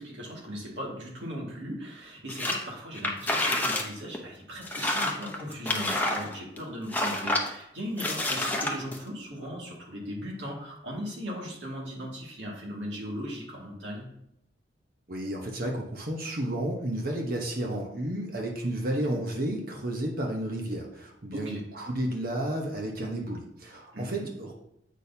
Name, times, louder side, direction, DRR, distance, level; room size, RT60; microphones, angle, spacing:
voice 1, 0.0-14.1 19.0-19.2 21.3-21.6 23.9-24.3, equal, 75° right, -2 dB, 2.2 m, -38 dB
sound 1, 2.3-2.6 3.0-3.9 4.1-4.2 4.6-6.6 6.9-7.5 8.0-9.0, left 1 dB, 10° left, 0.8 m, -28 dB
voice 2, 15.1-24.5, right 1 dB, 55° right, 0 dB, 1.0 m, -32 dB
8.4 x 6.2 x 2.8 m, 0.77 s
head